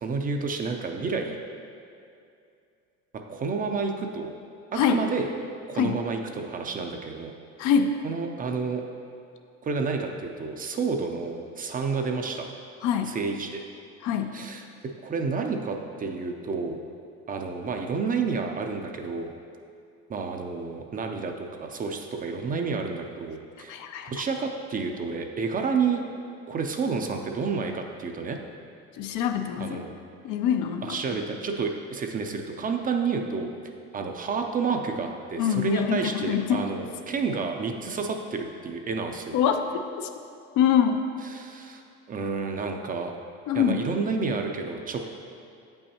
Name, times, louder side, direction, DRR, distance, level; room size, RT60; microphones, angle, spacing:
voice 1, 0.0-1.4 3.3-4.3 4.7-5.3 5.7-7.3 8.0-8.8 9.6-12.5 13.1-13.6 14.3-14.7 15.0-16.8 17.3-19.3 20.1-23.8 24.1-26.0 26.5-28.4 29.6-29.9 30.8-33.5 33.9-39.4 41.2-41.8 42.1-43.1 43.5-45.1, right 4 dB, 25° right, 4 dB, 0.5 m, -30 dB
voice 2, 7.6-8.0 12.8-13.1 14.0-14.3 23.7-24.1 28.9-29.8 30.2-31.2 35.4-36.7 39.3-40.1 40.6-41.0 43.5-43.8, left 8 dB, 65° left, 6 dB, 0.6 m, -25 dB
8.1 x 5.5 x 2.9 m, 2.5 s
supercardioid pair, 110°, 32 cm